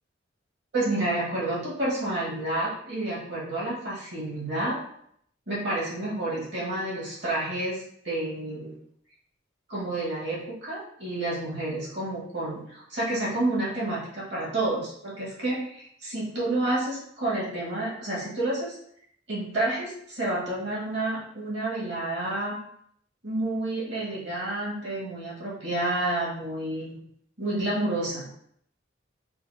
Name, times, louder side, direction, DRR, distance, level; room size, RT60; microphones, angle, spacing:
voice 1, 0.7-4.8 5.5-8.8 9.7-18.8 19.3-22.6 23.2-27.0 27.4-28.3, right 2 dB, 65° right, -6 dB, 1.8 m, -29 dB
5.6 x 2.1 x 4.2 m, 0.67 s
head